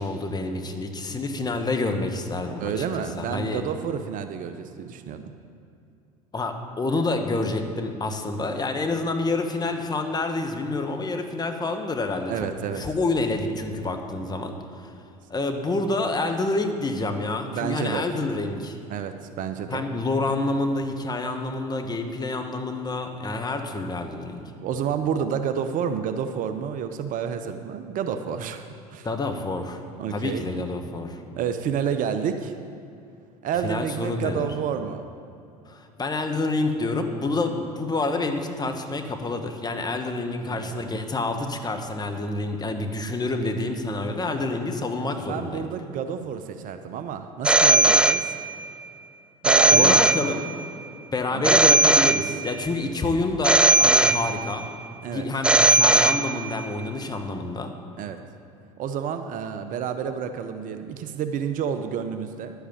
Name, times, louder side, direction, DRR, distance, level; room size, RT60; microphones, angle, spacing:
voice 1, 0.0-3.6 6.3-12.3 12.7-14.9 15.3-18.8 19.7-24.4 29.0-29.8 30.1-31.2 33.6-34.5 35.7-45.7 49.7-50.4 51.1-54.7 55.1-57.7, left 2 dB, 20° left, 5 dB, 1.4 m, -28 dB
voice 2, 2.6-5.3 12.3-12.8 17.5-18.1 18.9-19.8 24.6-28.6 28.9-29.1 30.0-30.5 31.4-32.5 33.4-35.0 40.3-40.7 45.3-48.3 49.4-49.9 51.3-51.4 55.0-55.3 58.0-58.2 58.8-62.5, right 7 dB, 45° right, 9 dB, 0.8 m, -29 dB
Telephone, 47.4-48.7 49.4-50.7 51.4-52.7 53.4-54.7 55.4-56.7, right 2 dB, 5° right, 0.4 m, -19 dB
11.0 x 8.1 x 7.3 m, 2.6 s
hypercardioid pair, 70°, 19 cm